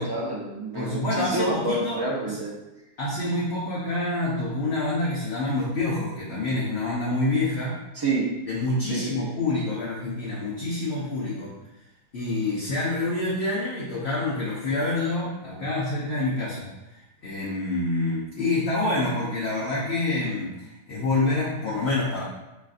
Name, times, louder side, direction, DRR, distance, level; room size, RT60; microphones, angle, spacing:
voice 1, 0.0-2.5 7.9-8.3 8.9-9.3, right 2 dB, 30° right, -4 dB, 0.5 m, -28 dB
voice 2, 0.7-2.0 2.3-2.4 3.0-7.8 8.5-11.5 12.1-16.7 16.9-22.2, left 2 dB, 50° left, -7 dB, 0.9 m, -27 dB
6.4 x 2.5 x 2.5 m, 0.99 s
omnidirectional pair, 1.7 m